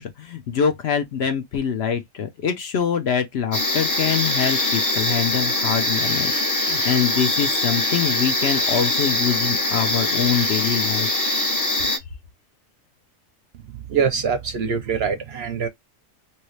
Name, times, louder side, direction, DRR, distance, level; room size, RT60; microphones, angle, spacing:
voice 1, 0.0-11.1, left 7 dB, 60° left, 0.8 m, -24 dB
sound 1, 3.5-12.0, left 1 dB, 20° left, 0.6 m, -22 dB
voice 2, 13.9-15.7, right 6 dB, 60° right, 0.7 m, -23 dB
3.0 x 2.7 x 3.1 m
omnidirectional pair, 1.4 m